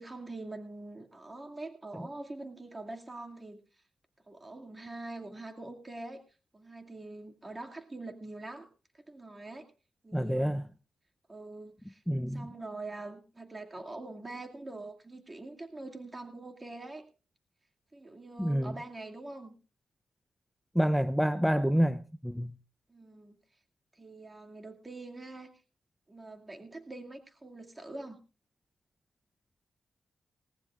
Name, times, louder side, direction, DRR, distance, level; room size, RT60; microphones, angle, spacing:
voice 1, 0.0-3.6 4.3-6.2 6.5-8.7 8.9-9.7 10.0-10.6 11.3-12.0 12.3-17.1 17.9-19.5 22.9-23.4 23.9-25.5 26.1-28.2, right 2 dB, 25° right, 2.3 m, -44 dB
voice 2, 10.1-10.7 12.1-12.5 18.4-18.8 20.7-22.5, equal, ahead, 0.7 m, -28 dB
19.5 x 18.0 x 2.5 m
supercardioid pair, 55°, 0 cm